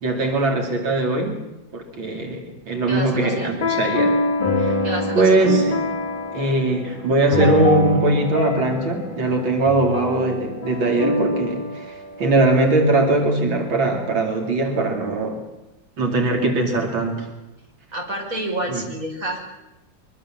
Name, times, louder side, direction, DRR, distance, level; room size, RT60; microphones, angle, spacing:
voice 1, 0.0-1.4 1.7-4.2 4.6-4.8 5.1-5.8 6.3-15.4 16.0-17.3 18.7-18.9, right 2 dB, 90° right, 3 dB, 3.5 m, -21 dB
voice 2, 2.9-3.5 4.8-5.5 17.9-19.4, right 1 dB, 45° right, 1 dB, 6.2 m, -28 dB
sound 1, 3.2-12.7, left 1 dB, 25° left, 2.0 m, -25 dB
23.5 x 23.5 x 7.5 m, 0.98 s
omnidirectional pair, 2.1 m